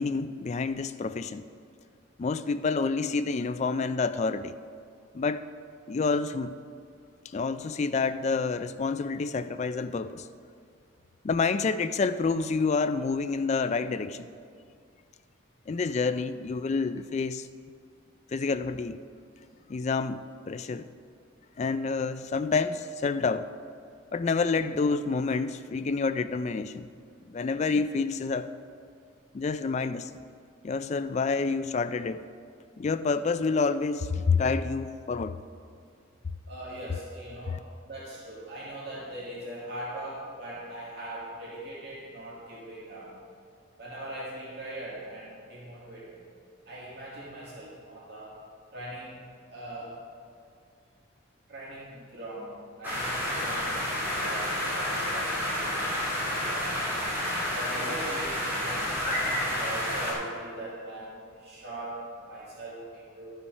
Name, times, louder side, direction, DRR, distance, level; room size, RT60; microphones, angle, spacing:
voice 1, 0.0-1.4 2.2-4.6 5.1-5.4 5.9-6.5 7.3-10.3 11.2-14.3 15.7-17.5 18.3-19.0 19.7-20.9 21.6-23.5 24.1-26.9 27.3-28.5 29.3-30.1 30.6-32.2 32.8-35.4 37.5-37.6, left 4 dB, 35° left, 12 dB, 0.3 m, -28 dB
voice 2, 36.5-37.6 37.8-43.1 43.8-46.2 46.7-48.4 48.7-49.2 49.5-50.0 51.5-55.9 56.3-56.8 57.5-63.3, right 1 dB, 55° right, -7 dB, 2.0 m, -40 dB
sound 1, 52.8-60.1, left 1 dB, 10° right, 2.5 m, -30 dB
12.5 x 5.7 x 5.4 m, 2.2 s
head